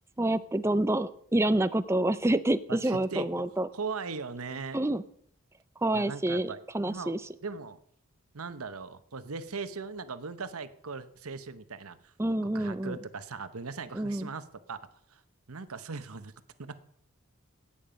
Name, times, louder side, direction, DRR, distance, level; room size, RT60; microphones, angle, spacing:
voice 1, 0.2-3.7 4.7-5.0 5.8-7.2 12.2-13.0 13.9-14.3, right 1 dB, 10° right, 13 dB, 0.5 m, -28 dB
voice 2, 2.7-3.3 3.7-4.8 5.9-7.1 7.4-7.8 8.3-12.1 12.5-14.8 15.1-15.2 15.5-16.3 16.6-16.8, right 4 dB, 85° right, 12 dB, 1.0 m, -39 dB
17.0 x 8.7 x 5.2 m, 0.69 s
head